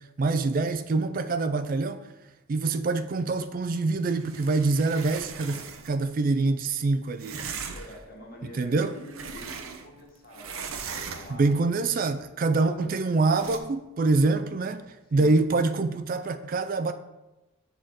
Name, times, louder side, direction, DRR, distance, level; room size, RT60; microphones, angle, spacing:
voice 1, 0.2-2.0 2.5-7.5 8.5-8.9 11.3-14.8 15.1-16.9, right 3 dB, 45° right, 0.4 m, -25 dB
sound 1, 4.1-6.0 7.2-8.0 8.7-10.0 10.3-11.5 13.2-13.6, right 6 dB, 90° right, 0.7 m, -39 dB
voice 2, 7.7-11.6 12.7-13.0 15.1-15.3, equal, 45° left, 1.7 m, -46 dB
6.4 x 4.0 x 6.2 m
head